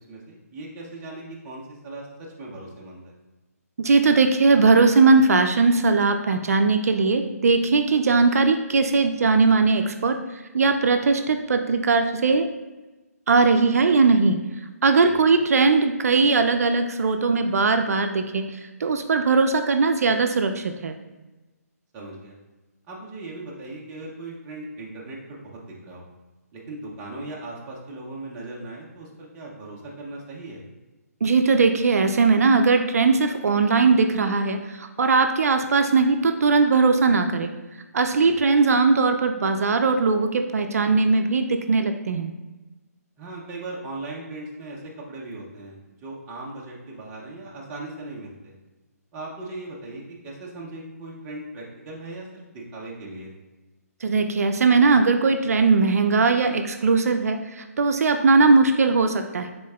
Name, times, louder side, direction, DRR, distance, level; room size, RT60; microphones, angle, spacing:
voice 1, 0.1-2.1 2.4-3.1 15.0-15.3 21.9-22.4 22.9-26.1 26.5-30.6 38.2-38.4 43.2-48.5 49.1-53.3, right 2 dB, 15° right, -4 dB, 0.5 m, -38 dB
voice 2, 3.8-10.2 10.5-12.5 13.3-14.4 14.8-18.5 18.8-20.9 31.2-37.5 37.9-42.3 54.0-59.5, right 4 dB, 65° right, 7 dB, 0.4 m, -19 dB
5.1 x 3.6 x 2.3 m, 1.1 s
hypercardioid pair, 165°, 9 cm